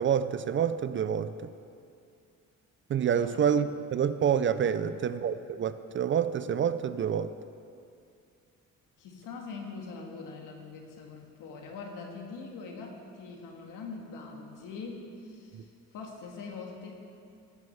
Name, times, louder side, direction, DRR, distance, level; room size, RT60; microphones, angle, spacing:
voice 1, 0.0-1.5 2.9-7.3, right 8 dB, 40° right, 13 dB, 0.4 m, -27 dB
voice 2, 4.7-5.1 9.0-17.0, left 4 dB, 80° left, 1 dB, 2.0 m, -43 dB
16.0 x 6.4 x 7.0 m, 2.5 s
cardioid pair, 125°, 31 cm